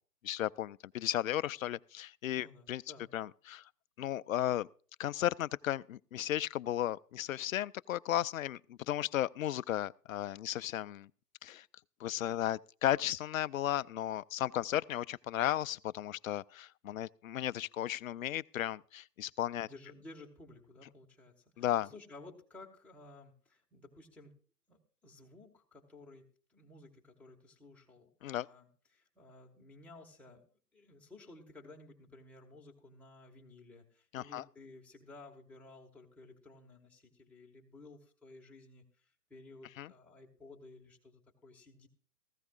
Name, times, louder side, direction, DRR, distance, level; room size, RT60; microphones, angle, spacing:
voice 1, 0.2-2.8 3.1-3.7 4.0-4.7 5.0-11.1 11.4-11.7 12.0-19.7 21.6-21.9 28.2-28.5 34.1-34.4 39.8-39.9, left 12 dB, 60° left, 0.5 m, -35 dB
voice 2, 2.4-3.1 19.6-24.3 24.7-30.4 30.7-41.9, left 2 dB, 5° left, 1.7 m, -55 dB
16.5 x 15.0 x 2.4 m
hypercardioid pair, 135°, 48 cm